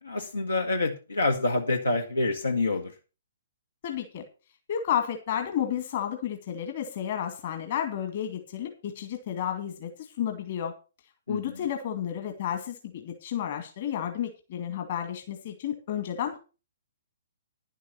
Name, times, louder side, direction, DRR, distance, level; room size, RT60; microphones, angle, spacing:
voice 1, 0.0-2.9 11.3-11.6, left 2 dB, 80° left, 3 dB, 1.6 m, -27 dB
voice 2, 3.8-4.3 4.7-10.7 11.3-16.4, left 9 dB, 45° left, 6 dB, 2.2 m, -32 dB
11.0 x 8.3 x 5.9 m, 0.33 s
figure-of-eight pair, 125°, 0 cm